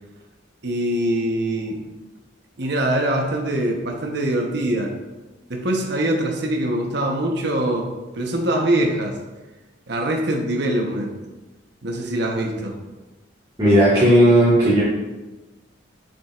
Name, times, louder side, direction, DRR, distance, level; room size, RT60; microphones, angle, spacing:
voice 1, 0.6-1.8 2.6-4.9 5.5-9.1 9.9-11.1 11.8-12.8, right 1 dB, 60° right, 1 dB, 1.0 m, -23 dB
voice 2, 13.6-14.8, right 1 dB, 25° right, -10 dB, 1.8 m, -14 dB
7.5 x 7.3 x 2.5 m, 1.1 s
head